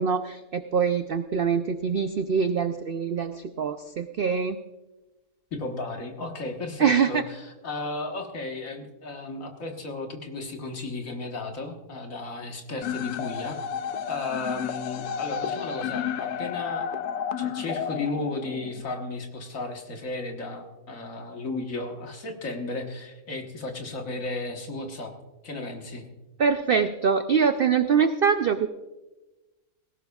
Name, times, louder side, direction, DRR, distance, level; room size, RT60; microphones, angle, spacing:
voice 1, 0.0-4.6 6.8-7.2 26.4-28.7, right 6 dB, 80° right, 9 dB, 0.5 m, -24 dB
voice 2, 5.5-13.6 14.1-16.9 17.4-25.1 25.4-26.0, left 3 dB, 60° left, 3 dB, 1.7 m, -34 dB
sound 1, 12.8-18.8, left 8 dB, 85° left, 1.2 m, -32 dB
18.5 x 17.0 x 2.3 m, 1.1 s
omnidirectional pair, 1.6 m